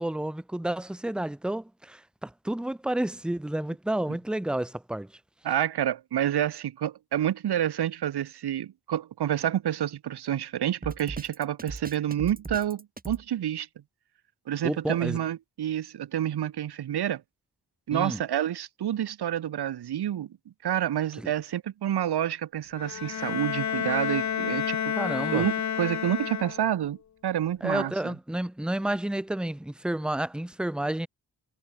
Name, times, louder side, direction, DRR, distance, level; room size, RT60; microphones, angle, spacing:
voice 1, 0.0-5.1 14.6-15.2 17.9-18.2 21.2-21.3 25.0-25.5 27.6-31.1, right 1 dB, ahead, 0.6 m, -30 dB
voice 2, 5.4-13.7 14.5-17.2 17.9-20.3 20.6-24.9 25.3-27.0 27.2-27.9, right 11 dB, 70° right, 0.8 m, -28 dB
Drum kit, 10.8-13.2, right 3 dB, 20° right, 1.8 m, -38 dB
Bowed string instrument, 22.8-26.9, left 8 dB, 45° left, 0.7 m, -30 dB
cardioid pair, 80°, 41 cm